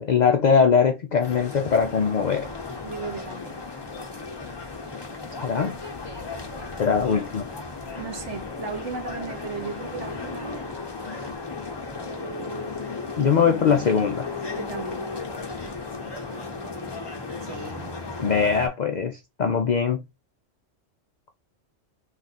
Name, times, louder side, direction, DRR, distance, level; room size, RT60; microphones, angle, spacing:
voice 1, 0.0-2.5 5.4-5.8 6.8-7.5 13.2-14.3 18.2-20.0, left 6 dB, 70° left, 0.4 m, -21 dB
sound 1, 1.2-18.7, left 3 dB, 25° left, 0.7 m, -35 dB
voice 2, 2.8-3.7 8.0-10.7 11.1-11.3 14.5-15.1 17.5-18.0, right 4 dB, 65° right, 1.3 m, -36 dB
3.2 x 2.4 x 4.1 m
omnidirectional pair, 1.3 m